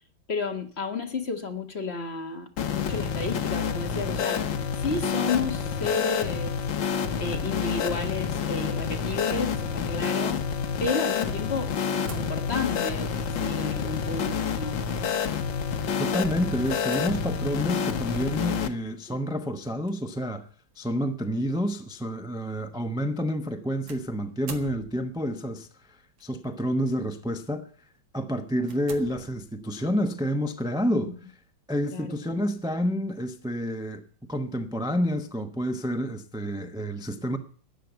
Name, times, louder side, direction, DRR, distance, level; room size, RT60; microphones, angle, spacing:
voice 1, 0.3-4.4 4.7-6.6 7.2-10.4 10.8-14.8 19.1-19.2 31.0-31.1 31.9-32.2, left 4 dB, 35° left, 1.6 m, -32 dB
sound 1, 2.6-18.7, left 7 dB, 75° left, 1.8 m, -28 dB
sound 2, 11.8-12.8 14.1-14.4 14.9-15.0 16.7-17.5 19.6-19.9 20.7-20.8 23.9-25.3 26.2-26.6 27.2-27.4 27.9-28.0 28.6-29.9, right 5 dB, 70° right, 2.5 m, -45 dB
voice 2, 16.0-20.5 20.8-27.7 28.1-31.1 31.7-34.0 34.3-37.4, equal, 5° right, 0.6 m, -29 dB
13.5 x 9.1 x 8.1 m
omnidirectional pair, 2.1 m